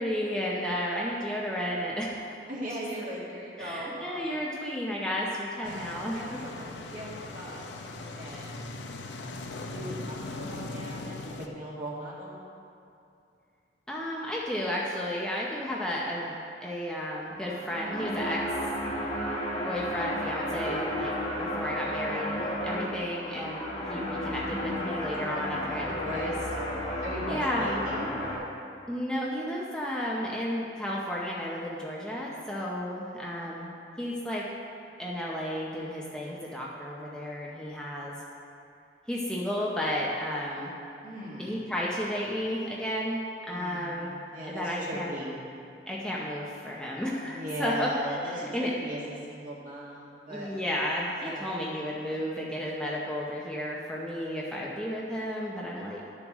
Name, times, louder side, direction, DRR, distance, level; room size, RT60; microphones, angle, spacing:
voice 1, 0.0-2.1 3.6-6.4 13.9-16.4 16.6-18.4 19.6-21.1 21.4-26.3 27.3-27.8 28.9-33.7 34.0-34.4 35.0-38.1 39.1-40.8 41.4-44.1 44.5-45.1 45.9-48.7 50.3-56.0, equal, 5° left, -5 dB, 0.7 m, -33 dB
voice 2, 2.5-4.4 5.6-8.5 9.7-12.4 25.2-26.5 27.0-28.1 41.0-41.7 43.5-45.4 47.2-50.5 51.2-51.5, right 1 dB, 50° right, -6 dB, 1.9 m, -39 dB
sound 1, 5.6-11.5, left 2 dB, 85° left, 0.6 m, -39 dB
sound 2, 17.3-28.4, equal, 35° left, 1.3 m, -33 dB
11.5 x 7.1 x 3.1 m, 2.6 s
head